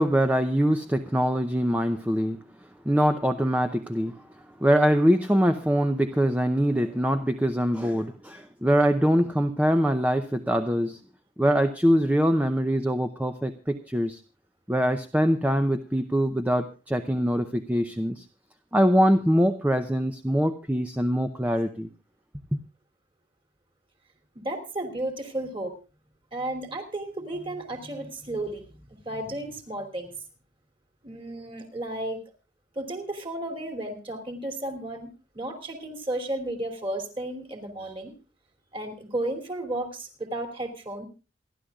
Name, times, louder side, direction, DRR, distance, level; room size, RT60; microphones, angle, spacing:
voice 1, 0.0-2.4 2.8-4.3 4.6-11.0 11.4-14.2 14.7-18.2 18.7-21.9, equal, 10° right, 7 dB, 0.7 m, -23 dB
voice 2, 24.3-25.7 26.3-28.6 29.0-30.1 31.0-32.2 32.7-38.1 38.7-41.1, right 1 dB, 30° right, 6 dB, 3.1 m, -33 dB
28.0 x 11.5 x 2.4 m, 0.32 s
head